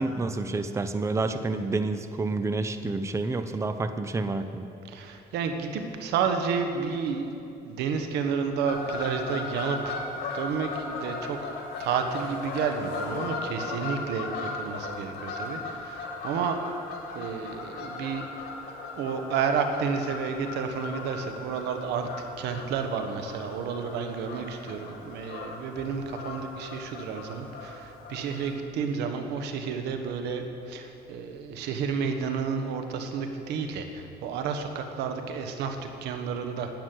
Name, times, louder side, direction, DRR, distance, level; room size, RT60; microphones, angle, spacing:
voice 1, 0.0-4.7, right 3 dB, 15° right, 9 dB, 0.6 m, -29 dB
voice 2, 4.9-7.3 7.6-10.0 10.3-11.4 11.8-16.6 17.1-18.3 19.0-22.1 22.4-36.7, right 6 dB, 85° right, 6 dB, 1.3 m, -31 dB
Fowl / Bird vocalization bird call bird song, 8.6-28.5, left 3 dB, 75° left, 3.1 m, -37 dB
12.0 x 9.6 x 7.7 m, 2.7 s
cardioid pair, 110°, 17 cm